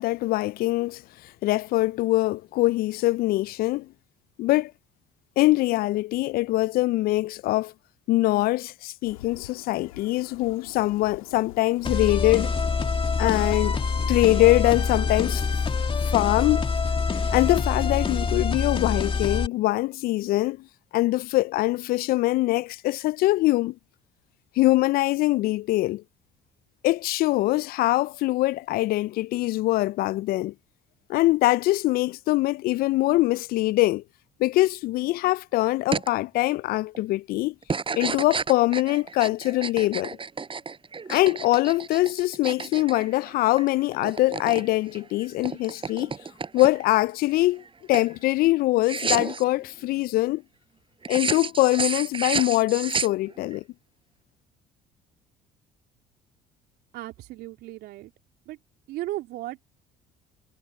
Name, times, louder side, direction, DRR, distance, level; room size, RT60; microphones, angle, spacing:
voice 1, 0.0-3.9 4.4-4.7 5.4-7.7 8.1-12.5 13.2-13.8 14.1-15.4 16.0-16.6 17.3-20.7 20.9-23.8 24.6-26.0 26.8-30.5 31.1-34.0 34.4-37.5 37.9-40.2 41.1-46.1 46.5-47.6 47.9-50.4 51.1-53.6, left 18 dB, 60° left, 0.4 m, -23 dB
sound 1, 9.0-18.4, left 15 dB, 90° left, 3.3 m, -46 dB
sound 2, 11.8-19.5, left 5 dB, 30° left, 2.1 m, -25 dB
sound 3, 35.9-36.1 36.5-37.0 37.6-43.7 43.9-44.7 44.9-46.9 47.4-47.7 47.9-48.1 48.8-49.4 51.0-53.6, right 5 dB, 30° right, 4.7 m, -31 dB
voice 2, 56.9-58.1 58.5-58.6 58.9-59.6, right 16 dB, 70° right, 3.3 m, -35 dB
hypercardioid pair, 60°, 18 cm